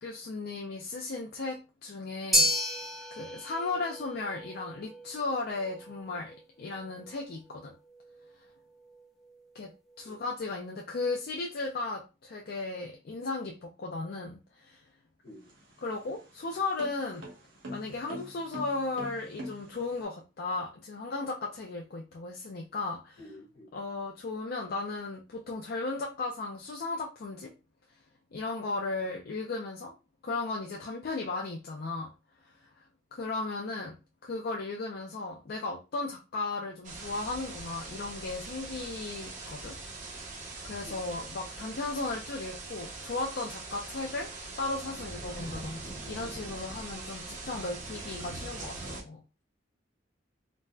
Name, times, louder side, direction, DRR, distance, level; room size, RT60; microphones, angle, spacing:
voice 1, 0.0-2.5 3.1-7.7 9.5-9.7 10.0-14.8 15.8-17.3 17.7-23.2 23.7-27.5 28.3-29.9 30.2-32.1 32.6-32.7 33.1-34.0 34.2-39.7 40.6-44.3 44.6-49.2, left 3 dB, 55° left, 0 dB, 0.4 m, -35 dB
sound 1, 2.3-10.7, equal, ahead, 0.7 m, -34 dB
voice 2, 15.2-15.5 23.2-23.8 40.8-41.3, left 1 dB, 75° left, -2 dB, 1.4 m, -51 dB
sound 2, 15.3-20.0, equal, 70° right, 1.1 m, -44 dB
sound 3, 36.8-49.0, right 3 dB, 40° right, 0.7 m, -42 dB
3.9 x 2.1 x 2.2 m, 0.28 s
head